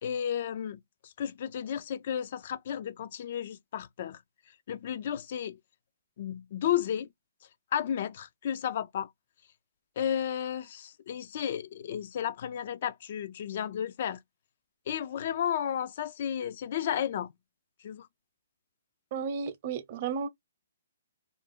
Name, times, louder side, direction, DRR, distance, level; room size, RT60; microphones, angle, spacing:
voice 1, 0.0-4.2 4.7-5.6 6.2-7.1 7.7-9.1 10.0-14.2 14.9-17.3 17.8-18.1, left 9 dB, 50° left, 0.3 m, -33 dB
voice 2, 19.1-20.3, right 6 dB, 40° right, 0.7 m, -33 dB
2.4 x 2.1 x 3.5 m
hypercardioid pair, 150°, 0 cm